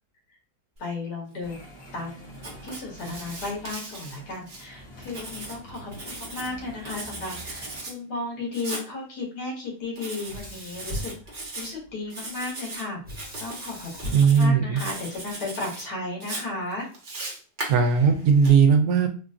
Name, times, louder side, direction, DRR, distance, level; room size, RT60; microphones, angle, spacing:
voice 1, 0.8-1.7 1.9-2.2 2.6-11.1 11.5-13.0 13.4-16.9, left 3 dB, 80° left, -1 dB, 1.7 m, -34 dB
sound 1, 1.4-7.9, equal, 55° left, 1.4 m, -46 dB
Writing, 2.3-4.6 5.0-6.5 6.8-7.9 8.5-8.9 10.0-10.4 10.7-11.7 12.1-12.8 13.1-13.7 14.0-14.5 14.8-15.8 16.2-18.5, right 2 dB, 35° right, 0.9 m, -38 dB
Sink (filling or washing), 10.3-11.9 13.0-15.3, equal, 5° right, 0.8 m, -38 dB
voice 2, 14.1-14.8 17.7-19.1, right 6 dB, 70° right, 4 dB, 1.0 m, -18 dB
3.8 x 2.3 x 2.4 m, 0.38 s
omnidirectional pair, 1.7 m